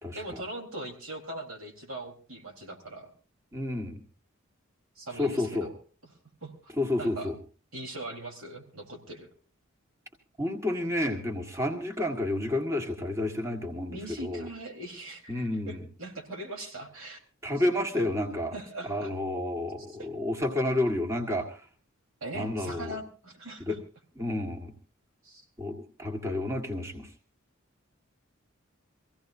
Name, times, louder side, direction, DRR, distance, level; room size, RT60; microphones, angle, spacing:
voice 1, 0.1-3.1 5.0-5.7 6.4-6.7 7.0-7.3 7.7-9.3 13.9-17.2 17.9-18.0 18.5-19.1 19.9-20.1 22.2-23.8 25.2-25.5, right 1 dB, 90° right, 2 dB, 4.0 m, -41 dB
voice 2, 3.5-4.0 5.2-5.7 6.8-7.3 10.4-14.5 15.3-15.8 17.4-18.5 18.9-21.7 22.3-23.0 23.7-23.8 24.2-24.7 25.6-27.1, left 1 dB, 15° right, 1 dB, 1.7 m, -30 dB
25.0 x 16.5 x 2.7 m, 0.37 s
head